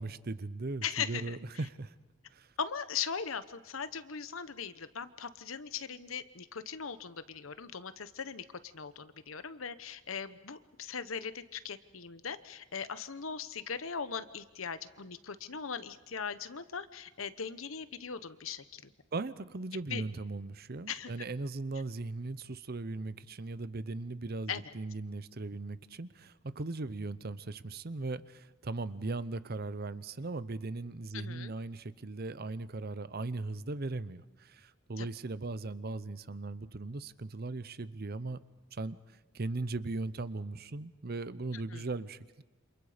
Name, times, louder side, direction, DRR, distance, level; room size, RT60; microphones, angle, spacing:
voice 1, 0.0-1.9 2.3-2.5 19.1-38.4 38.7-39.0 39.3-42.4, right 3 dB, 50° right, 16 dB, 0.7 m, -38 dB
voice 2, 0.8-1.4 2.6-18.9 19.7-20.0 20.9-21.1 24.5-24.7 31.1-31.5 35.0-35.1 41.7-41.8, left 6 dB, 80° left, 13 dB, 1.0 m, -39 dB
28.5 x 27.0 x 5.1 m, 1.0 s
head